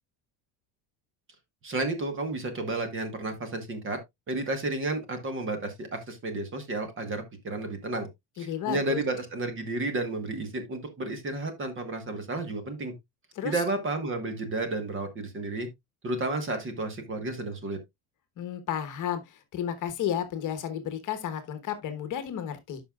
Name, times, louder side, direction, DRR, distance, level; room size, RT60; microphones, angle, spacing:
voice 1, 1.6-4.0 4.3-8.1 8.4-12.9 13.4-15.7 16.0-17.8, right 2 dB, 25° right, 1.3 m, -32 dB
voice 2, 8.4-9.0 13.3-13.6 18.4-22.8, left 9 dB, 40° left, 1.2 m, -32 dB
12.0 x 5.5 x 2.3 m
cardioid pair, 175°, 48 cm